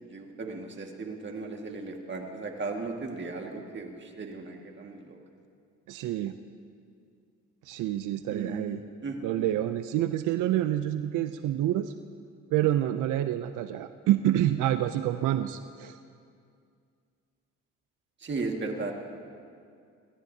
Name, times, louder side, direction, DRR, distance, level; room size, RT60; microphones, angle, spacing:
voice 1, 0.1-5.2 8.3-9.2 18.2-18.9, right 3 dB, 40° right, 2 dB, 1.8 m, -36 dB
voice 2, 5.9-6.4 7.6-8.8 9.2-11.9 12.5-16.0, right 12 dB, 85° right, 9 dB, 0.5 m, -27 dB
23.0 x 17.0 x 2.8 m, 2.3 s
cardioid pair, 90°, 30 cm